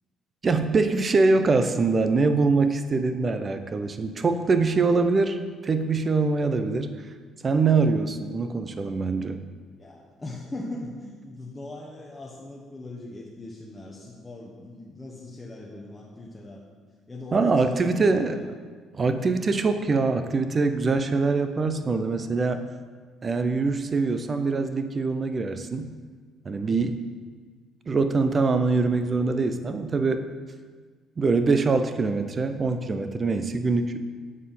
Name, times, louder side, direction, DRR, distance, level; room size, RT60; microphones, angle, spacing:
voice 1, 0.4-6.9 7.4-9.4 17.3-18.6 18.9-22.6 23.2-25.9 26.4-27.0 27.9-30.3 31.2-34.0, right 3 dB, 35° right, 9 dB, 0.6 m, -23 dB
voice 2, 9.8-16.6 17.1-18.5 19.0-19.2 23.6-23.8 26.7-27.0, left 2 dB, 15° left, -4 dB, 1.0 m, -40 dB
7.3 x 4.3 x 5.5 m, 1.5 s
cardioid pair, 90°, 0 cm